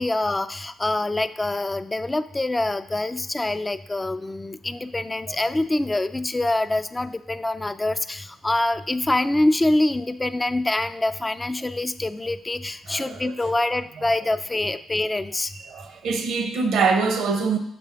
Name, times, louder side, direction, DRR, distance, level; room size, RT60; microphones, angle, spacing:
voice 1, 0.0-15.5, left 2 dB, 20° left, 0.3 m, -25 dB
voice 2, 12.9-13.3 15.7-17.6, right 4 dB, 70° right, 0.7 m, -24 dB
6.0 x 3.4 x 5.7 m
supercardioid pair, 60°, 0 cm